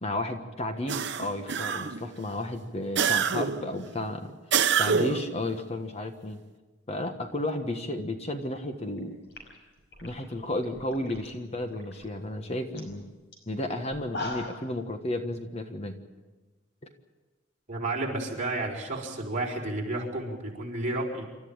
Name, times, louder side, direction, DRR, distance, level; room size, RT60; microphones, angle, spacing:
voice 1, 0.0-4.3 4.8-6.4 6.9-9.2 10.0-13.1 13.5-16.0, left 1 dB, 35° left, 6 dB, 1.4 m, -33 dB
sound 1, 0.9-2.1 2.9-3.7 4.5-5.3, right 7 dB, 65° right, 0.9 m, -26 dB
sound 2, 8.9-9.0 9.3-11.3 11.6-12.1 12.4-12.5 12.7-12.9 13.3-13.4 13.9-14.7, left 2 dB, 60° left, 5.5 m, -39 dB
voice 2, 17.7-21.2, right 2 dB, 40° right, -2 dB, 4.8 m, -31 dB
28.0 x 13.5 x 8.8 m, 1.2 s
head